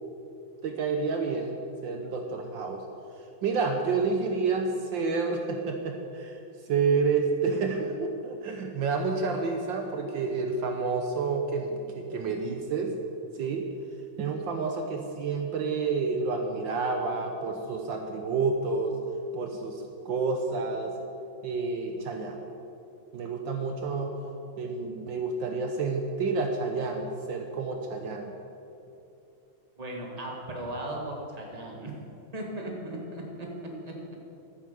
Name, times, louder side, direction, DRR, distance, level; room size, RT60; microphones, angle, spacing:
voice 1, 0.6-2.8 3.4-6.4 6.7-13.0 13.4-13.7 14.2-19.0 19.3-20.9 21.4-22.4 23.1-24.2 24.6-28.3, right 4 dB, 70° right, 4 dB, 1.6 m, -29 dB
voice 2, 29.8-32.0 32.3-34.2, right 1 dB, 20° right, -1 dB, 1.9 m, -37 dB
12.5 x 9.6 x 6.9 m, 2.8 s
omnidirectional pair, 2.2 m